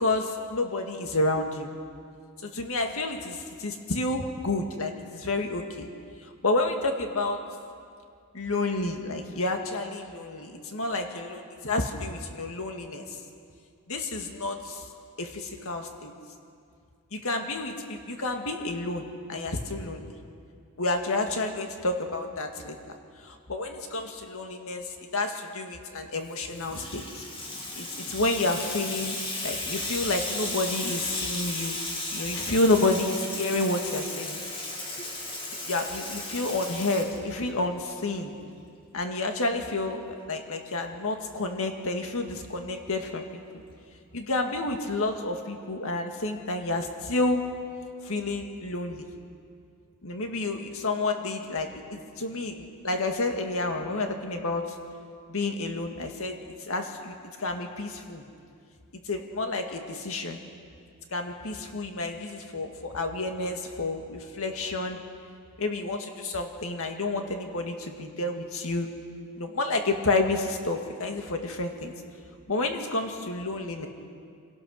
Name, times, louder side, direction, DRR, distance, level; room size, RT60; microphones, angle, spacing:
voice 1, 0.0-1.7 2.4-5.9 6.2-7.4 8.3-13.1 13.9-14.9 15.2-16.1 17.1-20.1 20.8-22.8 23.2-27.2 27.8-29.2 29.4-34.4 35.6-38.3 38.9-43.4 44.1-47.4 48.0-49.1 50.0-54.6 55.3-58.2 59.0-60.4 61.1-65.0 65.6-68.9 69.3-71.9 72.5-73.9, left 2 dB, 65° left, 4 dB, 2.0 m, -30 dB
Water tap faucet / Sink (filling or washing), 26.3-37.7, left 2 dB, 25° left, 2.7 m, -35 dB
25.5 x 17.5 x 6.5 m, 2.3 s
head